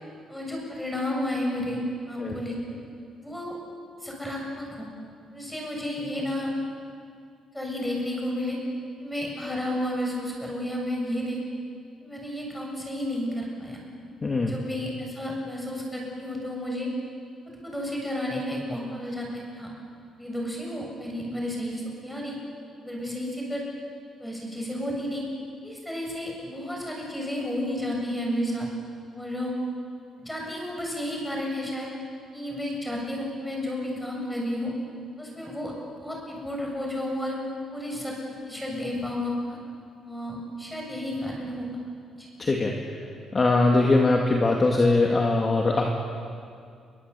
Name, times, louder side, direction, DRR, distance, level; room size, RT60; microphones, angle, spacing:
voice 1, 0.3-2.8 3.2-3.6 4.0-4.9 5.3-6.5 7.5-8.6 9.0-11.4 12.0-13.8 14.4-16.9 17.5-19.7 20.2-22.4 22.8-23.6 24.2-25.2 25.6-28.7 29.1-29.6 30.2-31.9 32.3-34.7 35.2-35.7 36.0-37.4 37.7-38.1 38.5-39.6 40.0-41.7 42.1-42.3, left 1 dB, 5° left, -1 dB, 7.4 m, -32 dB
voice 2, 42.4-42.8 43.3-45.9, left 2 dB, 25° left, 0 dB, 2.3 m, -21 dB
28.5 x 23.0 x 8.4 m, 2.3 s
cardioid pair, 145°, 0 cm